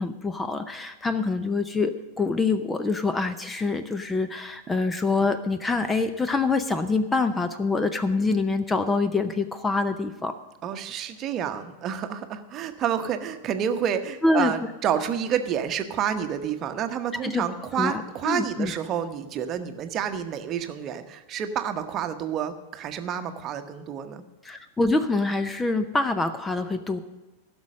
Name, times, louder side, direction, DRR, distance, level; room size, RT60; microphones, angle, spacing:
voice 1, 0.0-10.3 14.2-14.5 17.1-17.4 17.8-18.7 24.4-27.0, left 3 dB, 10° left, 11 dB, 0.6 m, -25 dB
voice 2, 10.6-24.2, right 8 dB, 30° right, 8 dB, 0.9 m, -29 dB
16.0 x 6.2 x 6.4 m, 1.2 s
figure-of-eight pair, 90°, 0 cm